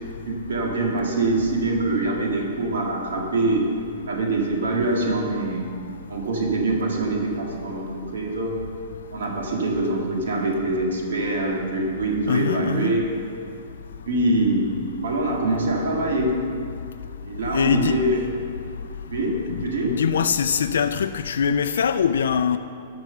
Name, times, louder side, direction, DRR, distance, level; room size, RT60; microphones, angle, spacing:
voice 1, 0.3-3.7 4.1-5.7 6.1-8.6 9.1-13.0 14.1-14.7 15.0-16.5 17.2-18.2 19.1-20.0, right 2 dB, 85° right, -1 dB, 1.9 m, -24 dB
voice 2, 12.3-12.9 17.5-18.0 19.5-22.6, left 7 dB, 85° left, 10 dB, 0.3 m, -23 dB
10.5 x 6.0 x 6.7 m, 2.4 s
hypercardioid pair, 175°, 0 cm